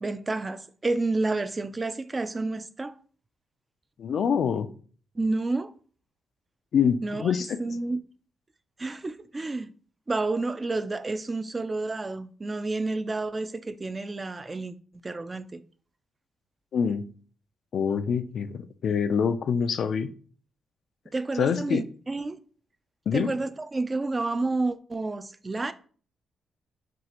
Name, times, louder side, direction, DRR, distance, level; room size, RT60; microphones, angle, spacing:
voice 1, 0.0-2.9 5.2-5.7 7.0-8.0 8.8-9.7 10.1-15.6 21.1-22.4 23.1-25.7, right 3 dB, 25° right, 0.4 m, -30 dB
voice 2, 4.0-4.7 6.7-7.6 16.7-17.1 17.7-20.1 21.3-21.8 23.1-23.3, left 7 dB, 65° left, 0.4 m, -25 dB
6.0 x 2.4 x 2.9 m
cardioid pair, 80°, 0 cm